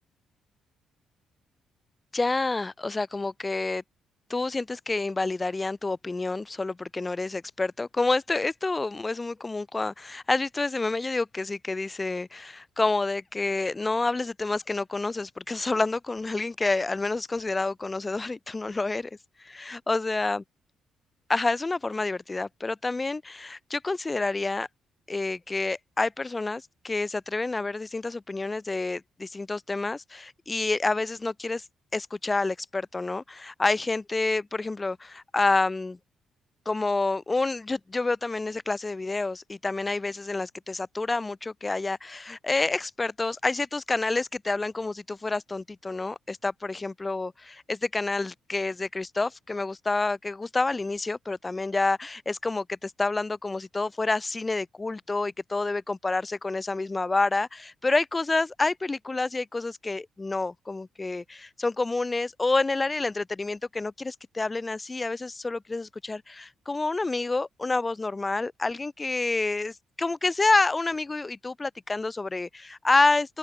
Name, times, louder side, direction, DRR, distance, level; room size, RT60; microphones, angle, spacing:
voice 1, 2.1-3.8 4.3-19.1 19.4-20.4 21.3-24.7 25.1-31.6 31.9-36.0 36.6-73.4, left 3 dB, 20° left, 3.0 m, -28 dB
open air
cardioid pair, 90°, 0 cm